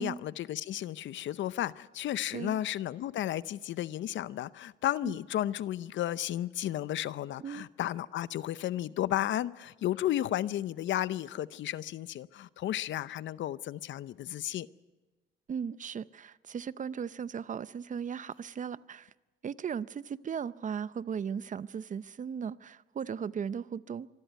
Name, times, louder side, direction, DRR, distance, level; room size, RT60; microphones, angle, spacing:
voice 1, 0.0-14.7, left 12 dB, 70° left, 0.7 m, -33 dB
voice 2, 15.5-19.1 19.4-24.1, right 7 dB, 40° right, 0.6 m, -37 dB
25.0 x 13.5 x 9.4 m
cardioid pair, 90°, 20 cm